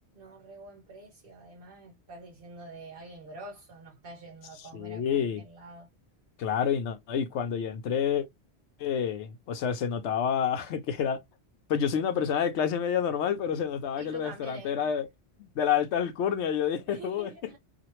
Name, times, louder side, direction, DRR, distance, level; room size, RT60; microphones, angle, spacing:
voice 1, 0.1-5.9 14.0-14.9 16.9-17.6, right 2 dB, 55° right, 1.0 m, -46 dB
voice 2, 4.7-5.4 6.4-8.3 8.8-11.2 11.7-15.1 15.4-17.3, left 8 dB, 85° left, 0.9 m, -28 dB
2.9 x 2.4 x 3.0 m
omnidirectional pair, 1.1 m